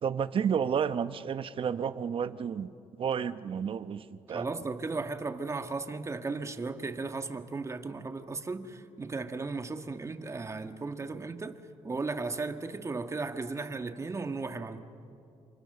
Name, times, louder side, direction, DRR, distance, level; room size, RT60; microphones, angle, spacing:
voice 1, 0.0-2.7 3.0-4.5, right 7 dB, 45° right, 1.0 m, -31 dB
voice 2, 4.3-11.6 11.8-14.8, right 3 dB, 20° right, 1.6 m, -36 dB
29.5 x 27.5 x 6.9 m
cardioid pair, 110°, 13 cm